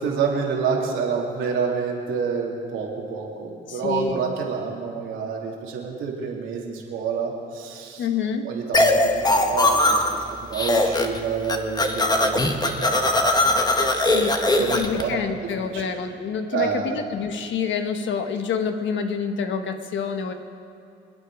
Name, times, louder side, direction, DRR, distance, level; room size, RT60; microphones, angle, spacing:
voice 1, 0.0-8.1 8.4-8.9 9.3-10.2 10.5-14.1 14.6-15.2 15.7-15.8 16.5-17.0, right 6 dB, 85° right, -2 dB, 2.9 m, -28 dB
voice 2, 3.7-4.3 8.0-8.5 14.0-20.3, left 6 dB, 70° left, 7 dB, 1.3 m, -27 dB
sound 1, 8.7-10.2 10.5-11.2 11.4-15.0, left 2 dB, 20° left, 1.4 m, -20 dB
26.5 x 9.2 x 4.9 m, 2.4 s
cardioid pair, 90°, 20 cm